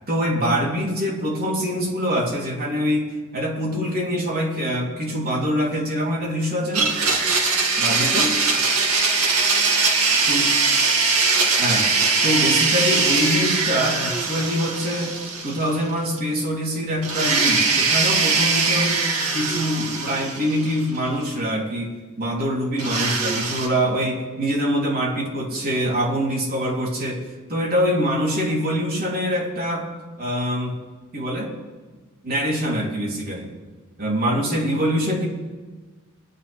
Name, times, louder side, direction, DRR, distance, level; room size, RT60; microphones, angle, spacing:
voice 1, 0.1-6.9 7.8-8.4 10.1-10.5 11.6-11.9 12.2-15.1 15.4-27.2 27.5-29.9 30.2-30.8 31.1-31.5 32.2-33.5 34.0-35.3, equal, 45° right, -3 dB, 3.5 m, -24 dB
Domestic sounds home sounds, 6.7-15.9 16.2-16.3 17.0-21.0 22.8-23.7, right 4 dB, 85° right, 2.3 m, -21 dB
24.0 x 10.0 x 3.6 m, 1.3 s
head